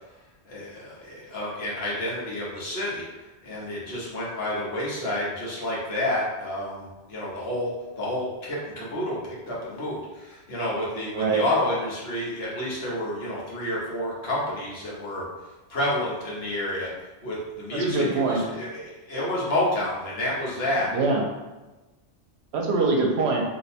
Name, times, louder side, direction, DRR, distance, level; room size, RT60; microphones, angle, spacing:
voice 1, 0.4-3.0 3.4-15.2 15.7-16.9 17.2-20.9, left 1 dB, 65° left, -6 dB, 1.1 m, -29 dB
voice 2, 17.7-18.4 20.9-21.2 22.5-23.4, right 3 dB, 70° right, 1 dB, 0.8 m, -23 dB
2.7 x 2.1 x 4.1 m, 1.1 s
omnidirectional pair, 1.2 m